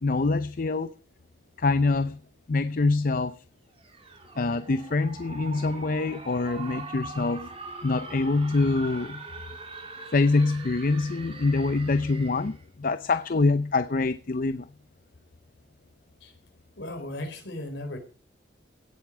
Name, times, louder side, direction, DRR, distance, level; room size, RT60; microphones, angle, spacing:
voice 1, 0.0-0.9 1.6-2.2 2.5-3.4 4.4-7.5 7.8-9.3 10.1-14.7, left 3 dB, 50° left, 0.6 m, -25 dB
sound 1, 3.8-12.6, right 3 dB, 30° right, 2.7 m, -43 dB
voice 2, 16.8-18.0, left 1 dB, 75° left, 4.1 m, -36 dB
16.5 x 8.3 x 6.1 m
head